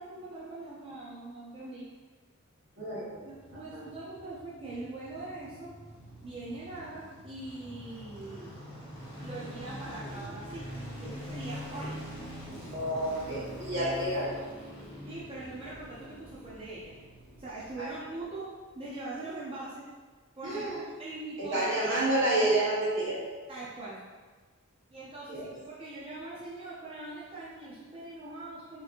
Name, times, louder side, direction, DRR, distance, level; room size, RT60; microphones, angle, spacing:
voice 1, 0.0-1.9 3.2-5.7 6.2-8.5 9.2-10.7 11.0-12.0 13.8-13.9 15.1-17.0 17.4-18.5 18.8-19.9 20.4-20.7 21.0-21.6 23.5-24.0 24.9-28.8, right 2 dB, 25° right, -7 dB, 0.7 m, -42 dB
voice 2, 2.8-3.2 3.5-3.8 12.7-14.3 17.8-17.9 20.4-20.8 21.4-23.2 25.3-25.5, right 1 dB, 60° right, -6 dB, 1.4 m, -29 dB
sound 1, 3.2-18.4 18.7-18.8, equal, 25° left, 1.2 m, -44 dB
5.8 x 3.1 x 2.6 m, 1.4 s
head